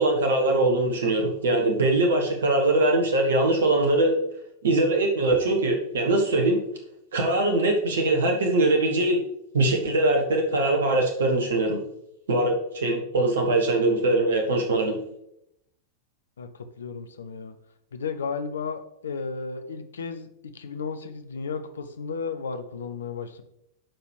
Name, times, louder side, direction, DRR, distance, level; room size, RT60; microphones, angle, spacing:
voice 1, 0.0-4.1 4.6-6.6 7.1-9.2 9.5-11.8 12.3-15.0, right 2 dB, 65° right, 2 dB, 1.3 m, -22 dB
voice 2, 16.8-17.6 17.9-20.3 20.5-23.4, left 5 dB, 65° left, 9 dB, 0.8 m, -33 dB
12.0 x 4.9 x 3.3 m, 0.78 s
figure-of-eight pair, 90°, 0 cm